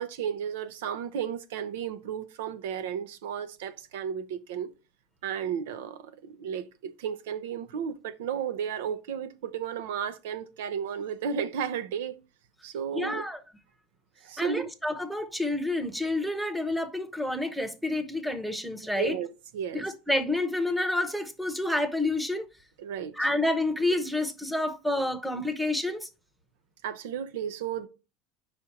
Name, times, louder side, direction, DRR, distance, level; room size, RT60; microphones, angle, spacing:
voice 1, 0.0-4.7 5.2-12.2 12.6-13.2 14.2-14.7 18.9-19.3 19.5-19.8 22.8-23.1 26.8-27.9, right 8 dB, 90° right, 0.7 m, -33 dB
voice 2, 12.9-13.4 14.4-19.2 19.7-22.5 23.1-26.1, left 1 dB, ahead, 0.8 m, -29 dB
5.0 x 4.3 x 5.8 m
supercardioid pair, 135°, 0 cm